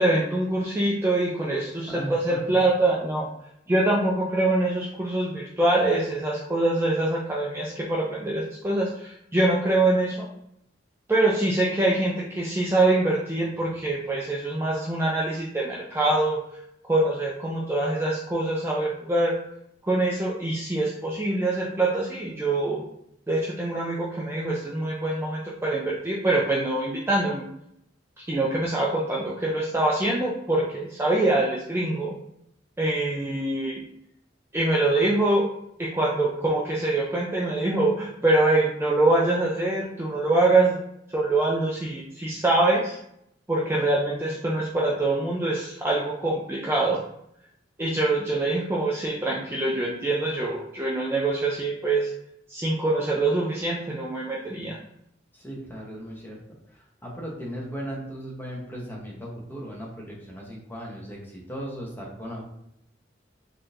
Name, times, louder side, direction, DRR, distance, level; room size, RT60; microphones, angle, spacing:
voice 1, 0.0-3.3 3.7-10.3 11.1-16.4 16.9-19.3 19.8-22.8 23.3-27.5 28.2-32.1 32.8-33.8 34.5-35.5 35.8-40.8 41.1-43.0 43.5-47.0 47.8-52.1 52.5-54.8, right 2 dB, 15° right, -4 dB, 0.3 m, -24 dB
voice 2, 1.9-2.6 55.3-56.4 56.7-62.4, equal, 10° left, -3 dB, 0.7 m, -37 dB
3.5 x 2.7 x 2.4 m, 0.76 s
head